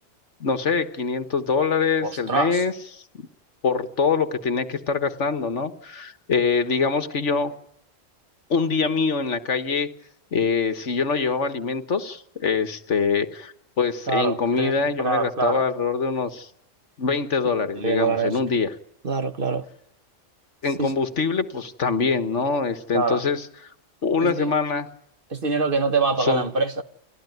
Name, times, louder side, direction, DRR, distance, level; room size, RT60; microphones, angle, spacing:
voice 1, 0.4-3.3 3.6-7.5 8.5-9.9 10.3-16.5 17.0-18.7 20.6-23.5 24.0-24.9 26.2-26.4, left 5 dB, 65° left, 1.7 m, -24 dB
voice 2, 2.0-2.6 14.1-15.6 17.8-18.4 19.0-19.6 20.8-20.9 22.9-23.2 24.2-24.5 25.3-26.8, right 4 dB, 45° right, 1.3 m, -25 dB
30.0 x 19.5 x 9.3 m
omnidirectional pair, 1.3 m